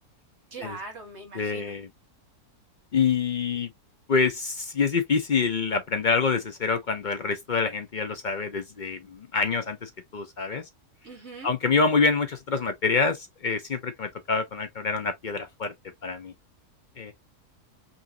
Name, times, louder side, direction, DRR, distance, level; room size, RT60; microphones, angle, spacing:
voice 1, 0.5-1.7 11.0-11.5, right 3 dB, 50° right, 1.6 m, -41 dB
voice 2, 1.3-1.9 2.9-3.7 4.1-10.6 11.4-15.7 16.0-16.3 17.0-17.1, left 5 dB, 60° left, 0.5 m, -26 dB
5.4 x 2.6 x 2.6 m
omnidirectional pair, 1.6 m